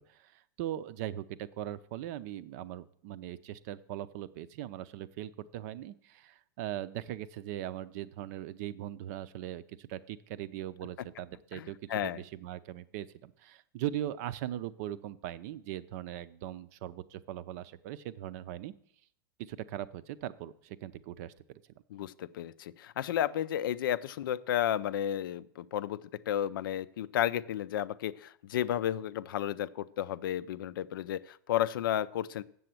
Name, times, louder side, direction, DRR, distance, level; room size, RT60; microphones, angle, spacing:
voice 1, 0.1-11.8 12.0-18.7 19.5-21.6, right 12 dB, 50° right, 15 dB, 0.5 m, -40 dB
voice 2, 11.5-12.2 21.9-32.4, left 11 dB, 75° left, 15 dB, 0.5 m, -32 dB
7.7 x 6.9 x 7.6 m, 0.63 s
hypercardioid pair, 140°, 12 cm